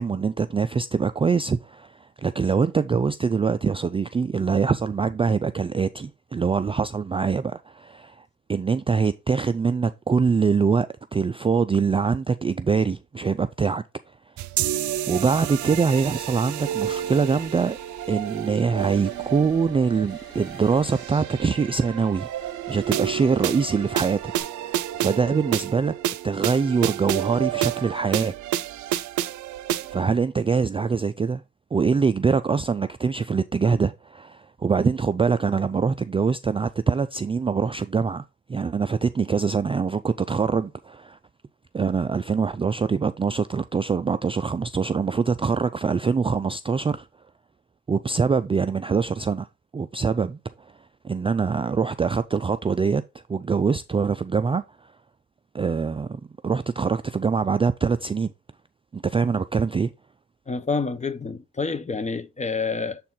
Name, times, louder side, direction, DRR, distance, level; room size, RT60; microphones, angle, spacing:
voice 1, 0.0-13.8 15.1-17.8 18.1-22.3 22.7-24.3 24.6-25.9 26.2-28.3 29.9-31.4 31.7-41.2 41.7-47.1 47.9-49.5 49.7-50.7 51.0-53.0 53.3-54.6 55.5-58.3 58.9-59.9, right 5 dB, 20° right, 0.3 m, -24 dB
sound 1, 14.4-30.0, right 12 dB, 75° right, 0.6 m, -30 dB
sound 2, 14.9-24.4, left 1 dB, 40° left, 2.8 m, -52 dB
voice 2, 60.5-63.0, left 4 dB, 25° left, 1.0 m, -28 dB
7.3 x 4.3 x 3.8 m
cardioid pair, 90°, 30 cm